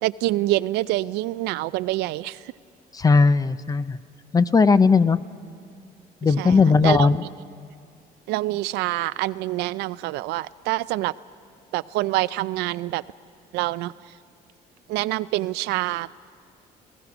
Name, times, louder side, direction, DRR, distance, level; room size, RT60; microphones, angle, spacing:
voice 1, 0.0-2.5 6.4-7.1 8.3-11.1 11.7-13.0 13.5-13.9 14.9-16.2, right 17 dB, 90° right, 17 dB, 0.4 m, -26 dB
voice 2, 2.9-4.0 4.3-5.2 6.2-7.3, left 4 dB, 20° left, 15 dB, 0.6 m, -18 dB
27.5 x 17.0 x 6.1 m, 2.3 s
cardioid pair, 110°, 17 cm